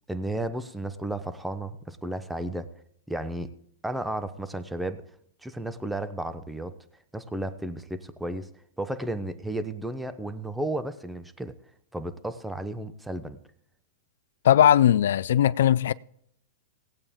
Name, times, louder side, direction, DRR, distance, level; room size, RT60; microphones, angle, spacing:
voice 1, 0.1-2.7 3.1-3.5 3.8-5.0 5.4-6.7 7.1-8.5 8.8-11.5 11.9-13.4, right 1 dB, 5° right, 0.8 m, -33 dB
voice 2, 14.4-15.9, left 10 dB, 75° left, 0.3 m, -19 dB
18.0 x 8.6 x 3.7 m
hypercardioid pair, 125°, 0 cm